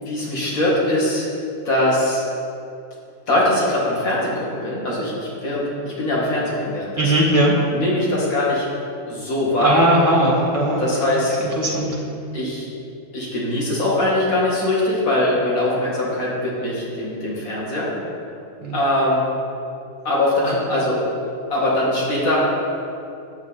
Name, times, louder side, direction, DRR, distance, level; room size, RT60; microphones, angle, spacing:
voice 1, 0.1-1.3 1.6-2.2 3.3-7.2 7.7-8.7 9.1-9.8 10.8-11.3 12.3-12.7 13.1-17.9 18.7-19.2 20.0-21.0 21.5-22.4, left 1 dB, 60° left, -6 dB, 2.5 m, -21 dB
voice 2, 7.0-7.5 9.6-10.8 11.6-11.9 18.6-18.7, right 1 dB, 20° right, -4 dB, 1.8 m, -18 dB
9.7 x 9.1 x 4.2 m, 2.6 s
omnidirectional pair, 1.7 m